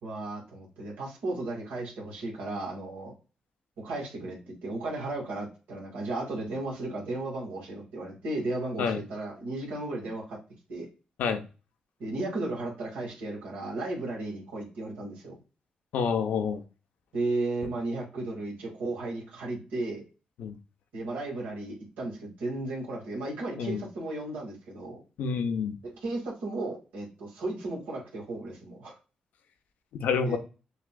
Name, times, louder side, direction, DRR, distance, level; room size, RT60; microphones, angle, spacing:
voice 1, 0.0-3.1 3.8-10.4 10.7-10.9 12.0-15.3 17.1-20.0 20.9-25.0 25.8-28.9 30.2-30.4, right 2 dB, 85° right, 1.8 m, -34 dB
voice 2, 15.9-16.6 20.4-20.6 23.6-23.8 25.2-25.8 29.9-30.4, left 6 dB, 80° left, 0.6 m, -28 dB
6.5 x 2.5 x 2.2 m
supercardioid pair, 55°, 3 cm